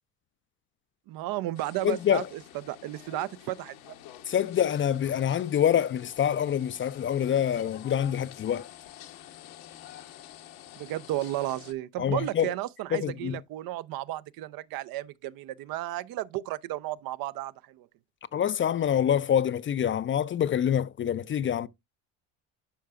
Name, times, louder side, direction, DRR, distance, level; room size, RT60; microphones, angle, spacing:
voice 1, 1.1-2.4 2.7-3.9 10.8-17.9, right 15 dB, 65° right, 0.5 m, -33 dB
sound 1, 1.5-11.7, left 12 dB, 75° left, 1.0 m, -48 dB
voice 2, 1.8-2.2 4.3-8.7 12.0-12.5 12.9-13.4 18.3-21.7, left 9 dB, 35° left, 0.4 m, -26 dB
11.5 x 4.7 x 2.4 m
supercardioid pair, 85°, 39 cm